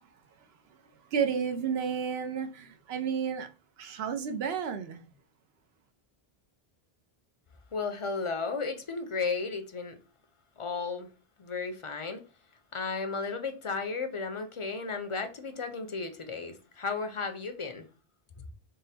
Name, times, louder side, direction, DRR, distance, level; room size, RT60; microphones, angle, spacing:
voice 1, 1.1-3.5 3.8-5.0, right 7 dB, 85° right, 0.8 m, -31 dB
voice 2, 7.7-10.0 10.6-11.1 11.4-12.2 12.7-17.8, left 4 dB, 45° left, 0.4 m, -34 dB
3.7 x 2.0 x 4.1 m
omnidirectional pair, 1.0 m